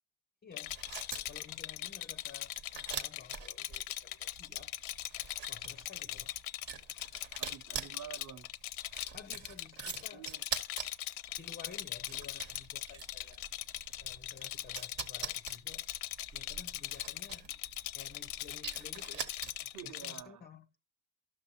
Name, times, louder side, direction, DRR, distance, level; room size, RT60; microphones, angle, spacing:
voice 1, 0.4-0.8 1.2-4.8 5.5-6.3 9.1-10.3 11.4-13.4 14.0-15.9 16.3-17.5 17.9-19.3 19.8-20.7, left 7 dB, 20° left, 0.4 m, -53 dB
Rattle, 0.5-20.2, left 15 dB, 90° left, 0.6 m, -41 dB
sound 1, 0.6-19.9, right 6 dB, 65° right, 1.1 m, -45 dB
voice 2, 7.3-8.5 10.1-10.4 19.6-20.4, right 9 dB, 40° right, 0.8 m, -49 dB
12.0 x 5.9 x 2.8 m
supercardioid pair, 70°, 48 cm